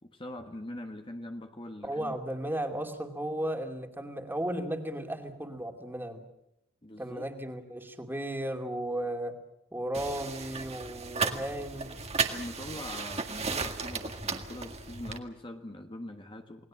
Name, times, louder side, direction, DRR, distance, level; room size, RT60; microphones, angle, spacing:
voice 1, 0.0-2.2 6.8-7.2 12.3-16.7, left 1 dB, 25° left, 4 dB, 1.4 m, -42 dB
voice 2, 1.8-6.2 7.0-9.3 9.7-12.0, right 1 dB, 10° right, 4 dB, 2.6 m, -35 dB
sound 1, 9.9-15.2, right 4 dB, 35° right, 1.9 m, -34 dB
29.0 x 19.5 x 7.6 m, 0.82 s
head